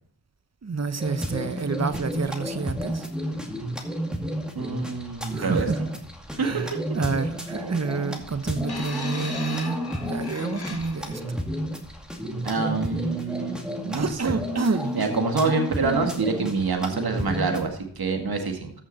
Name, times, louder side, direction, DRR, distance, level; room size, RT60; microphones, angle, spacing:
voice 1, 0.6-3.1 5.3-5.8 6.4-11.4 13.9-15.0, right 4 dB, 35° right, 1.1 m, -29 dB
sound 1, 1.0-17.7, equal, ahead, 2.2 m, -32 dB
voice 2, 4.6-5.7 6.4-6.6 12.4-14.4 14.9-18.7, right 4 dB, 55° right, 2.0 m, -26 dB
sound 2, 8.7-11.2 12.2-12.3, left 3 dB, 60° left, 2.6 m, -38 dB
14.5 x 6.3 x 4.2 m
cardioid pair, 50°, 43 cm